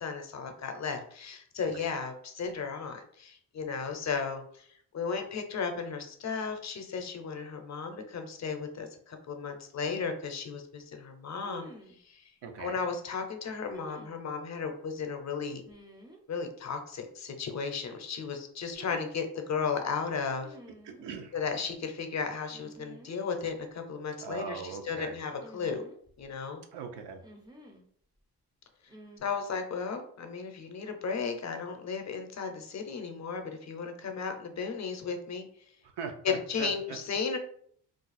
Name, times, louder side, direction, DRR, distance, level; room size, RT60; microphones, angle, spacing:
voice 1, 0.0-4.7 4.9-11.7 12.0-12.2 12.6-15.6 16.3-20.6 21.3-25.8 26.2-26.6 29.2-35.5 36.2-37.4, left 5 dB, 45° left, 6 dB, 0.6 m, -35 dB
sound 1, 9.5-9.6 11.4-12.0 13.7-14.2 15.7-16.2 18.7-19.3 20.4-21.1 22.5-23.2 23.4-23.5 25.4-26.3 27.2-27.9 28.9-29.2, right 1 dB, 10° right, 0.4 m, -50 dB
voice 2, 12.4-12.8 20.8-21.3 24.2-25.2 26.7-27.2 35.8-37.0, right 6 dB, 80° right, 5 dB, 0.7 m, -40 dB
2.5 x 2.3 x 4.0 m, 0.62 s
cardioid pair, 115°, 40 cm